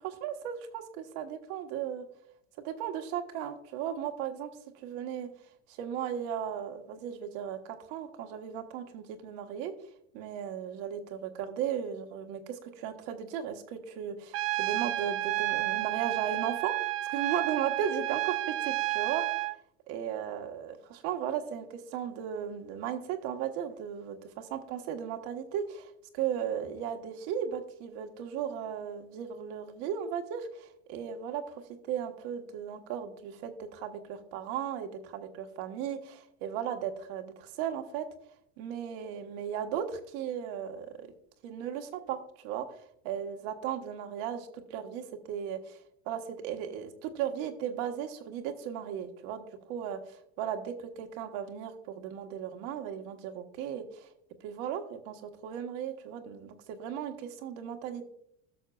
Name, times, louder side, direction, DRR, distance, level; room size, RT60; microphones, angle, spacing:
voice 1, 0.0-2.0 2.6-4.5 4.7-5.3 5.8-9.7 10.1-19.4 19.9-31.6 31.9-38.0 38.6-40.9 41.4-42.6 43.0-45.8 46.1-54.1 54.4-58.1, right 9 dB, 65° right, 5 dB, 1.4 m, -36 dB
Trumpet, 14.3-19.6, right 18 dB, 45° right, 0.5 m, -31 dB
16.5 x 6.4 x 2.4 m, 0.72 s
supercardioid pair, 105°, 33 cm